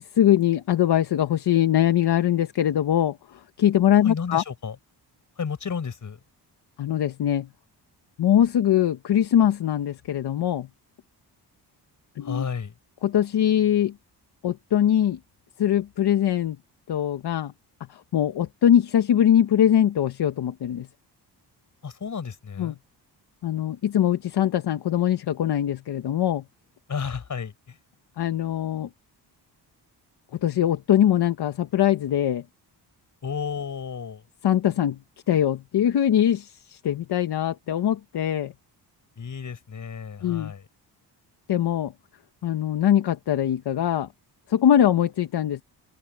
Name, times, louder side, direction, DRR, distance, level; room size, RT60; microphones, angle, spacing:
voice 1, 0.1-3.2 3.6-4.4 6.8-7.5 8.2-10.7 12.2-12.4 13.0-13.9 14.4-15.2 15.6-16.6 16.9-17.5 17.9-20.9 22.6-22.7 23.4-26.4 28.2-28.9 30.4-32.4 34.4-35.0 35.3-38.5 40.2-40.5 41.5-41.9 42.4-44.1 44.5-45.6, left 10 dB, 70° left, 1.2 m, -22 dB
voice 2, 3.9-4.8 5.4-6.2 12.2-12.8 21.8-22.8 26.9-27.8 33.2-34.2 39.2-40.7, left 6 dB, 45° left, 6.2 m, -32 dB
open air
wide cardioid pair, 130°, 42 cm